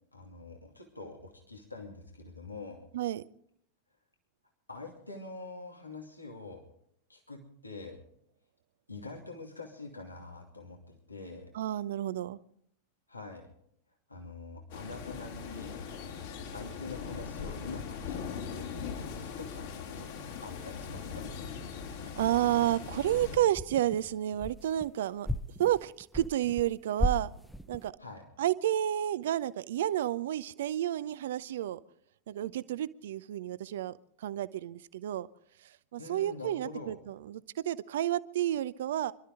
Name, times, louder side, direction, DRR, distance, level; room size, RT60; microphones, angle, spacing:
voice 1, 0.1-2.9 4.7-6.6 7.1-8.0 8.9-11.5 13.1-13.5 14.1-15.8 16.1-18.7 19.0-20.1 20.4-21.3 28.0-28.3 36.0-37.0, left 3 dB, 85° left, 1 dB, 2.6 m, -45 dB
voice 2, 11.5-12.4 22.2-25.3 25.6-27.3 27.7-27.9 28.4-31.8 32.3-35.3 35.6-39.1, right 12 dB, 60° right, 17 dB, 0.7 m, -31 dB
sound 1, 14.7-23.4, left 6 dB, 55° left, 3.2 m, -40 dB
sound 2, 23.5-24.9 25.2-26.7 27.0-27.9, equal, 5° left, 0.7 m, -35 dB
25.0 x 13.0 x 3.8 m, 0.70 s
figure-of-eight pair, 90°, 0 cm